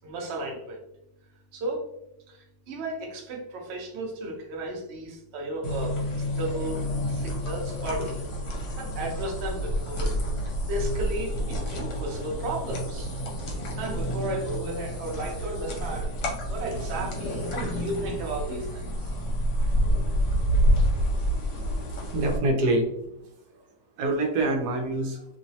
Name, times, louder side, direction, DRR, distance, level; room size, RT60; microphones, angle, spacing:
voice 1, 0.0-0.8 1.5-1.9 2.3-8.3 8.8-10.2 10.7-13.1 13.8-16.2 16.5-19.2, right 1 dB, 85° right, 0 dB, 0.5 m, -34 dB
sound 1, 5.6-22.4, equal, 70° left, 1.2 m, -28 dB
voice 2, 21.9-23.0 23.2-23.6 24.0-25.3, right 2 dB, 70° right, 2 dB, 1.0 m, -26 dB
3.0 x 2.0 x 2.6 m, 0.84 s
omnidirectional pair, 2.0 m